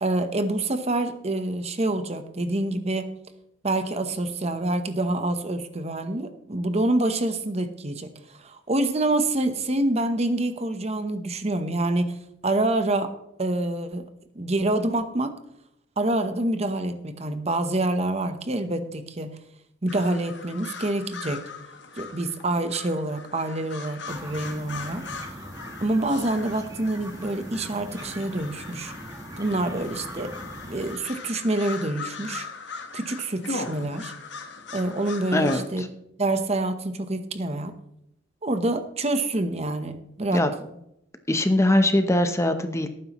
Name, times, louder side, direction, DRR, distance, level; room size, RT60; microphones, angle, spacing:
voice 1, 0.0-3.1 3.6-12.2 12.4-13.1 13.4-14.1 14.3-15.4 16.0-19.4 19.8-21.5 22.0-25.1 25.8-28.9 29.4-30.3 30.7-32.5 32.9-34.1 34.7-35.9 36.2-37.7 38.4-40.4, right 2 dB, 35° right, 9 dB, 0.9 m, -26 dB
sound 1, 19.9-35.7, left 4 dB, 65° left, 1.4 m, -39 dB
sound 2, 24.1-31.0, right 1 dB, 20° right, 1.2 m, -41 dB
voice 2, 35.3-35.9 40.3-40.5 41.3-42.9, left 1 dB, 15° left, 8 dB, 0.7 m, -21 dB
18.0 x 9.4 x 3.0 m, 0.79 s
head